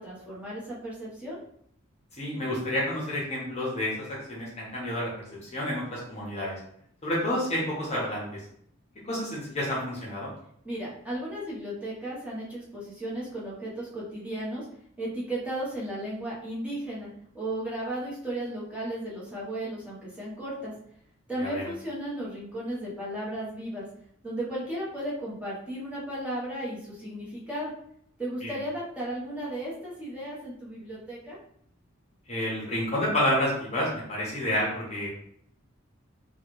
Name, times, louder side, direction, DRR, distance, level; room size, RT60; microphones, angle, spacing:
voice 1, 0.0-1.4 10.6-14.7 15.0-17.1 17.3-20.7 21.3-23.9 24.2-27.7 28.2-31.4, right 1 dB, 5° right, -7 dB, 1.0 m, -35 dB
voice 2, 2.2-5.1 5.4-6.5 7.0-8.4 9.0-10.3 21.4-21.7 28.4-28.5 32.3-35.1, left 1 dB, 35° left, -5 dB, 0.9 m, -29 dB
3.1 x 2.3 x 3.1 m, 0.68 s
head